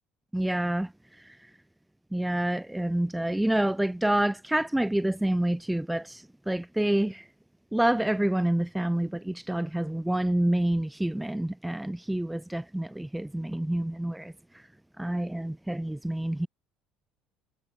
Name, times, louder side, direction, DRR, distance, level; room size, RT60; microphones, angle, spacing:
voice 1, 0.3-0.9 1.2-1.4 2.1-7.3 7.7-14.3 15.0-16.5, right 1 dB, 5° right, 3.6 m, -28 dB
cardioid pair, 170°, 0 cm